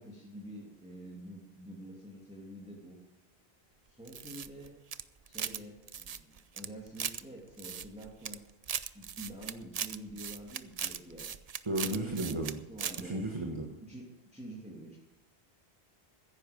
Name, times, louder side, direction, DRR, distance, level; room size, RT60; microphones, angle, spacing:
voice 1, 0.0-3.0 3.9-4.8 5.3-8.4 8.9-11.3 11.8-13.2 13.8-15.0, right 1 dB, 5° right, -4 dB, 2.7 m, -47 dB
sound 1, 4.1-5.6 5.9-7.2 7.6-8.4 8.6-12.5 12.8-13.0, right 8 dB, 45° right, 0.5 m, -38 dB
voice 2, 11.6-12.6 13.0-13.7, right 1 dB, 25° right, 1 dB, 1.4 m, -34 dB
15.0 x 10.0 x 5.2 m, 1.0 s
omnidirectional pair, 1.1 m